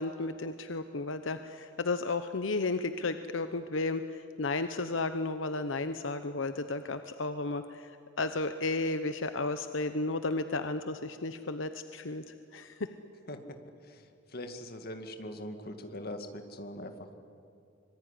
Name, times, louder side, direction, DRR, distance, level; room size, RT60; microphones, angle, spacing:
voice 1, 0.0-7.9 8.2-12.9, left 3 dB, 85° left, 10 dB, 0.9 m, -33 dB
voice 2, 13.8-17.1, left 1 dB, 50° left, 6 dB, 2.1 m, -42 dB
25.0 x 23.0 x 10.0 m, 2.6 s
head